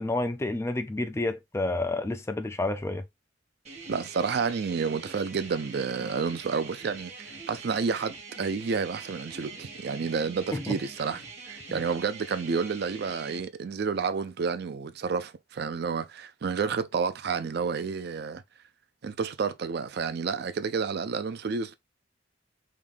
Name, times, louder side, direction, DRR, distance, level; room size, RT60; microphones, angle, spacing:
voice 1, 0.0-3.0 10.5-10.8 11.7-11.8, left 2 dB, 15° left, 0.4 m, -30 dB
sound 1, 3.6-13.4, right 4 dB, 35° right, 1.3 m, -44 dB
voice 2, 3.9-11.2 11.5-18.4 19.0-21.8, right 5 dB, 60° right, 0.4 m, -30 dB
3.6 x 2.6 x 3.4 m
head